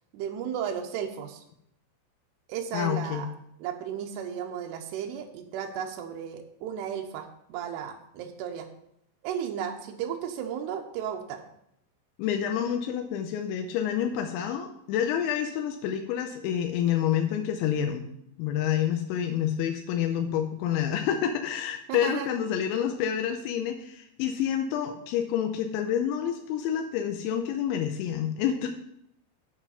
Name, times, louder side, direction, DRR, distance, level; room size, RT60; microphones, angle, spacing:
voice 1, 0.1-1.4 2.5-3.3 3.6-8.7 9.2-11.4 21.9-22.3, right 8 dB, 85° right, 3 dB, 2.3 m, -34 dB
voice 2, 2.7-3.2 12.2-18.1 18.4-28.7, left 9 dB, 85° left, 5 dB, 2.8 m, -28 dB
7.7 x 7.3 x 5.5 m, 0.76 s
omnidirectional pair, 5.8 m